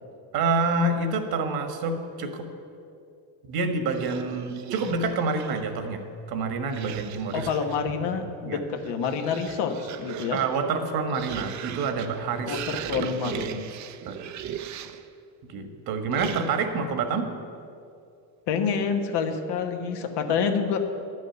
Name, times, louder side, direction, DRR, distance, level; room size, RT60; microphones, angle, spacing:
voice 1, 0.3-2.5 3.5-7.5 8.1-8.6 10.3-12.6 13.0-13.4 14.0-14.3 15.5-17.3, right 4 dB, 60° right, 6 dB, 1.5 m, -28 dB
sound 1, 3.9-5.8 6.7-7.9 8.6-15.1 16.1-16.8, right 10 dB, 45° right, 0.6 m, -38 dB
voice 2, 7.3-10.4 12.4-13.6 18.5-20.8, left 6 dB, 70° left, 6 dB, 1.3 m, -27 dB
11.0 x 6.4 x 9.1 m, 2.5 s
cardioid pair, 120°, 41 cm